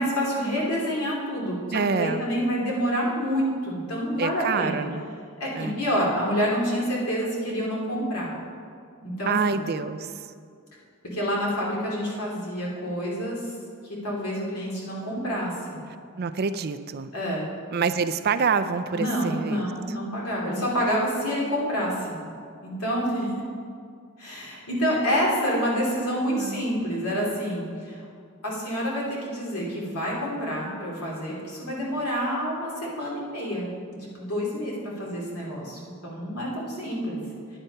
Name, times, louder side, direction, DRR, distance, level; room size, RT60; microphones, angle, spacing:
voice 1, 0.0-4.9 5.4-8.3 9.0-9.7 11.0-13.4 13.9-15.8 17.1-17.5 18.9-22.2 22.6-23.3 24.2-28.0 28.4-33.7 34.1-37.2, equal, 90° left, -4 dB, 3.0 m, -28 dB
voice 2, 1.7-2.3 4.2-5.0 5.6-5.8 9.3-10.3 16.2-17.1 17.7-20.0 25.5-26.7, right 5 dB, 45° right, 10 dB, 0.4 m, -27 dB
10.0 x 9.1 x 5.5 m, 2.2 s
head